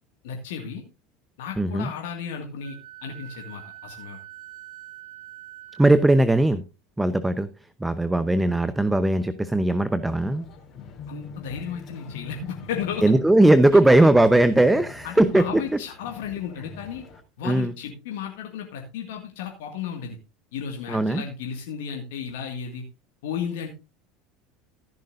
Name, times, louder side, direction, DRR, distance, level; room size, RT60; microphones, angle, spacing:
voice 1, 0.2-0.8 1.4-2.8 3.0-4.2 11.1-13.0 15.0-17.0 17.4-20.2 20.5-22.8 23.2-23.7, left 7 dB, 75° left, 2 dB, 2.0 m, -34 dB
voice 2, 1.6-1.9 5.8-6.6 7.0-7.5 7.8-10.4 13.0-15.6 17.4-17.7 20.9-21.2, right 1 dB, 10° right, 13 dB, 0.9 m, -19 dB
Wind instrument woodwind instrument, 2.6-6.1, right 13 dB, 65° right, 1.9 m, -44 dB
sound 1, 10.1-17.2, left 4 dB, 45° left, 3.3 m, -43 dB
15.0 x 10.5 x 2.6 m, 0.28 s
hypercardioid pair, 80°, 0 cm